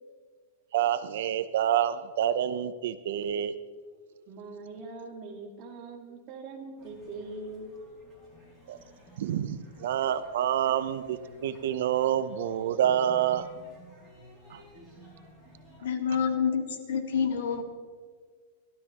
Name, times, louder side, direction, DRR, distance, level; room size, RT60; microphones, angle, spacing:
voice 1, 0.7-3.6 8.7-8.8 9.2-13.5 14.5-14.6, right 10 dB, 60° right, 12 dB, 0.7 m, -27 dB
voice 2, 4.3-7.7, right 3 dB, 30° right, 0 dB, 2.1 m, -42 dB
sound 1, 6.8-15.8, right 1 dB, 10° left, 4.8 m, -53 dB
voice 3, 15.8-17.6, left 6 dB, 80° left, 5 dB, 1.9 m, -28 dB
30.0 x 12.5 x 3.0 m, 1.5 s
supercardioid pair, 175°, 0 cm